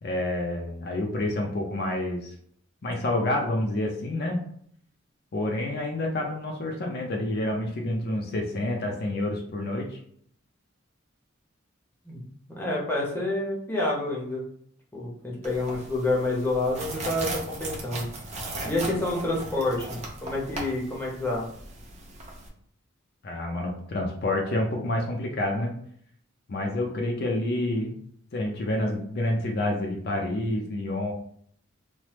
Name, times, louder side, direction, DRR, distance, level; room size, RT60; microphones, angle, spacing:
voice 1, 0.0-2.3 2.8-4.4 5.3-10.0 23.2-25.7 26.5-28.0 28.3-31.1, left 1 dB, 50° left, 0 dB, 0.5 m, -28 dB
voice 2, 12.5-14.4 14.9-18.1 18.6-21.4, left 2 dB, 10° left, -4 dB, 0.7 m, -28 dB
sound 1, 15.4-22.5, right 2 dB, 35° right, 0.6 m, -37 dB
3.2 x 2.0 x 2.9 m, 0.63 s
head